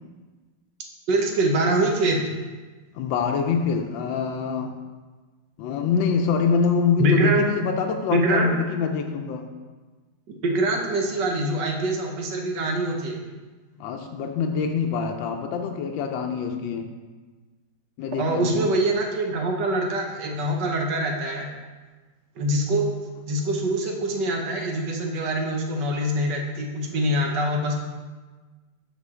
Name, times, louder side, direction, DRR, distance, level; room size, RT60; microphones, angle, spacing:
voice 1, 1.1-2.3 7.0-7.4 8.1-8.5 10.4-13.2 18.2-21.5 22.4-22.9 23.2-27.7, right 1 dB, 70° right, 1 dB, 1.5 m, -24 dB
voice 2, 2.9-4.8 5.6-9.5 13.8-16.9 18.0-18.6, left 6 dB, 85° left, 5 dB, 1.3 m, -25 dB
7.4 x 5.6 x 3.6 m, 1.3 s
omnidirectional pair, 2.0 m